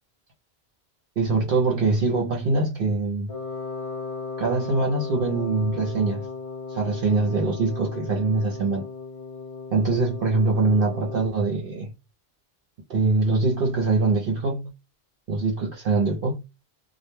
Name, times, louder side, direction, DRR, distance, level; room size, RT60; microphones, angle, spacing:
voice 1, 1.2-3.3 4.4-6.3 6.7-8.8 9.7-11.9 12.9-14.7 15.3-16.4, right 3 dB, 65° right, 0.7 m, -23 dB
Wind instrument woodwind instrument, 3.3-11.3, left 4 dB, 40° left, 0.7 m, -36 dB
2.1 x 2.1 x 3.0 m
omnidirectional pair, 1.0 m